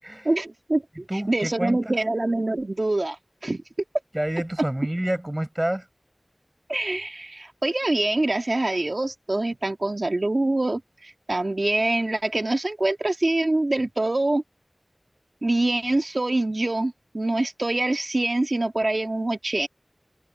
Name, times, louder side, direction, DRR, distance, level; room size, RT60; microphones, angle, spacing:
voice 1, 0.2-3.6 6.7-14.4 15.4-19.7, right 2 dB, 60° right, 1.7 m, -25 dB
voice 2, 1.1-2.0 4.1-5.8, right 1 dB, 25° right, 6.2 m, -28 dB
wide cardioid pair, 50°, 0 cm